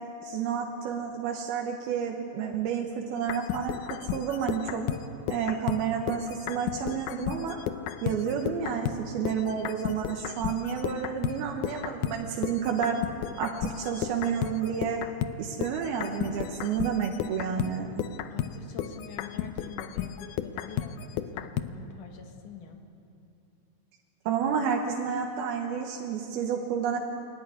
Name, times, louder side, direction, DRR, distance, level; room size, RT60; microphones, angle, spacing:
voice 1, 0.2-4.8 5.3-7.6 8.0-13.0 13.4-15.0 15.4-17.9 24.3-27.0, right 7 dB, 85° right, 1 dB, 3.1 m, -30 dB
sound 1, 3.2-9.0 9.3-21.7, left 11 dB, 80° left, 1.9 m, -34 dB
voice 2, 18.3-22.8, left 6 dB, 60° left, 3 dB, 3.2 m, -45 dB
24.0 x 14.5 x 9.9 m, 2.8 s
omnidirectional pair, 4.3 m